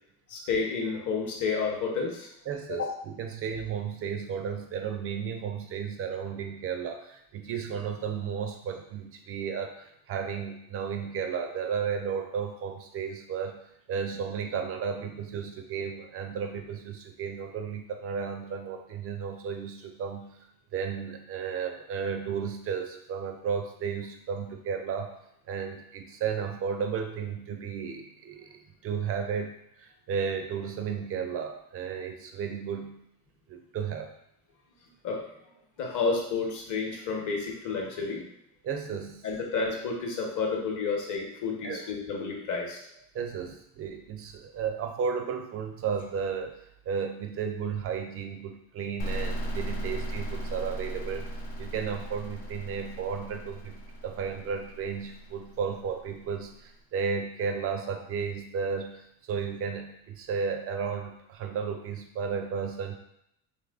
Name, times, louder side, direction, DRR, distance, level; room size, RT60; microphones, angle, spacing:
voice 1, 0.3-2.3 2.7-2.9 35.0-35.2 35.8-38.2 39.2-42.8, left 4 dB, 40° left, 0 dB, 0.8 m, -30 dB
voice 2, 2.5-13.6 13.9-20.4 20.7-25.2 25.5-33.0 33.5-34.1 38.6-39.3 41.6-41.8 43.1-46.6 46.9-51.3 51.6-63.0, right 6 dB, 35° right, 5 dB, 0.4 m, -33 dB
sound 1, 49.0-56.5, right 1 dB, 75° left, 0.8 m, -37 dB
3.1 x 2.4 x 2.4 m, 0.77 s
hypercardioid pair, 60°, 47 cm